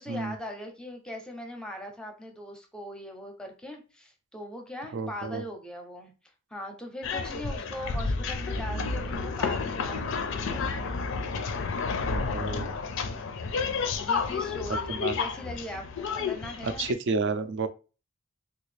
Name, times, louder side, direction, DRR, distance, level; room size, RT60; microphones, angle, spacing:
voice 1, 0.0-6.1 6.5-10.7 13.6-16.9, equal, 5° left, 0.6 m, -40 dB
voice 2, 4.9-5.4 12.1-12.7 14.9-15.2 16.6-17.7, right 4 dB, 60° right, 0.4 m, -31 dB
sound 1, 7.0-16.9, left 4 dB, 60° left, 0.4 m, -31 dB
3.4 x 2.3 x 3.2 m
head